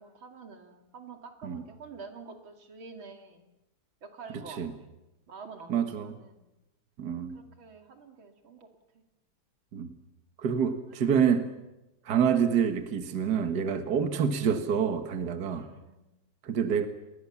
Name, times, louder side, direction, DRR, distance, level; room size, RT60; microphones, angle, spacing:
voice 1, 0.0-3.5 4.0-4.9 5.3-6.4 7.3-8.7 8.9-9.0 10.9-11.0 15.5-16.1, right 4 dB, 85° right, 5 dB, 3.3 m, -48 dB
voice 2, 5.7-6.1 7.0-7.4 9.7-9.9 10.4-11.5 12.1-15.7 16.4-16.9, right 7 dB, 55° right, 8 dB, 2.0 m, -27 dB
29.5 x 21.0 x 7.2 m, 0.97 s
omnidirectional pair, 2.1 m